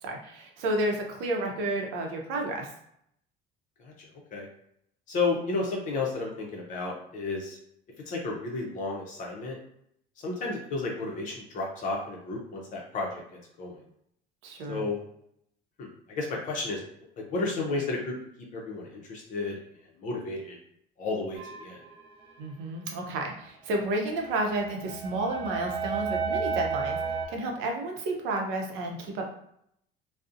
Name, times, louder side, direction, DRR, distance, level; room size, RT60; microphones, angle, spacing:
voice 1, 0.0-2.7 14.4-14.9 22.4-29.3, right 2 dB, 90° right, 2 dB, 0.6 m, -31 dB
voice 2, 5.1-7.6 8.1-9.6 10.2-13.2 13.6-13.7 14.7-15.0 15.8-15.9 16.2-16.8 17.3-18.2 18.5-19.6 20.0-20.6 21.0-21.8, left 3 dB, 45° left, -1 dB, 0.5 m, -32 dB
sound 1, 21.4-21.9 23.9-27.3, right 5 dB, 30° right, 0.4 m, -32 dB
2.5 x 2.0 x 2.4 m, 0.72 s
cardioid pair, 160°, 19 cm